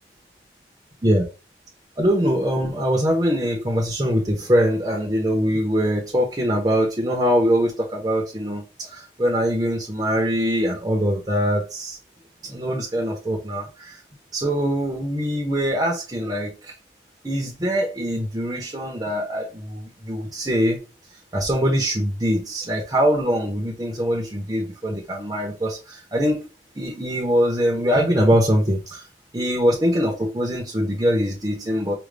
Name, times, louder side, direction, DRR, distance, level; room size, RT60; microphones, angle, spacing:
voice 1, 2.0-12.0 12.4-14.0 14.3-16.7 17.2-20.8 21.3-26.5 26.8-29.0 29.3-31.9, equal, 20° right, 0.7 m, -23 dB
5.0 x 2.2 x 3.3 m
head